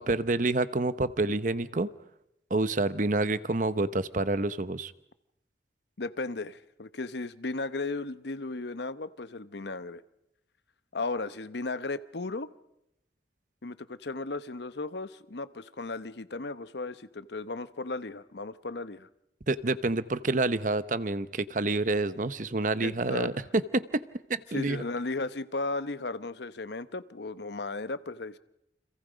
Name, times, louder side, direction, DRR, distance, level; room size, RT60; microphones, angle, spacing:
voice 1, 0.0-1.9 2.5-4.9 19.5-24.0 24.3-24.8, right 2 dB, 45° right, 14 dB, 0.9 m, -28 dB
voice 2, 6.0-10.0 10.9-12.5 13.6-19.1 22.8-23.4 24.5-28.4, left 3 dB, 70° left, 13 dB, 0.9 m, -35 dB
30.0 x 26.5 x 5.2 m, 0.81 s
head